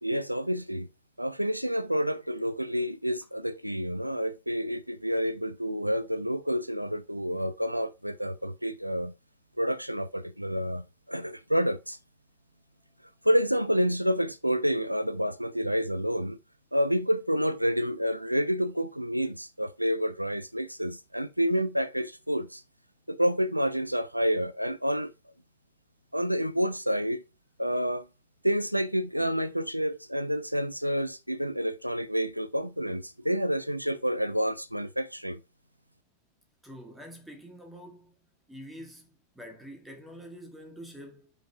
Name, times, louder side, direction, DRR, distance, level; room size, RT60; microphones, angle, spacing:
voice 1, 0.0-0.9 1.2-9.1 9.6-12.0 13.2-16.4 16.7-22.6 23.1-25.1 26.1-27.2 27.6-28.1 28.4-35.4, equal, 90° right, 0.4 m, -29 dB
voice 2, 36.6-41.3, equal, 5° right, 2.0 m, -46 dB
5.5 x 5.2 x 4.8 m
figure-of-eight pair, 90°, 0 cm